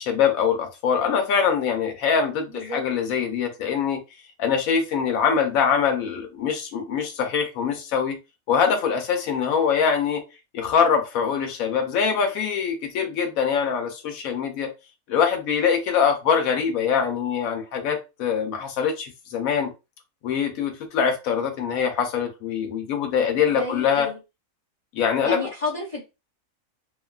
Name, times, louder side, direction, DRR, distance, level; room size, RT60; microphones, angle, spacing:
voice 1, 0.0-4.0 4.4-8.2 8.5-10.2 10.5-14.7 15.1-19.7 20.2-24.1 24.9-25.4, left 7 dB, 90° left, 1.1 m, -23 dB
voice 2, 2.5-2.8 23.4-24.2 25.2-26.0, left 2 dB, 40° left, 0.5 m, -31 dB
2.6 x 2.3 x 2.2 m
omnidirectional pair, 1.4 m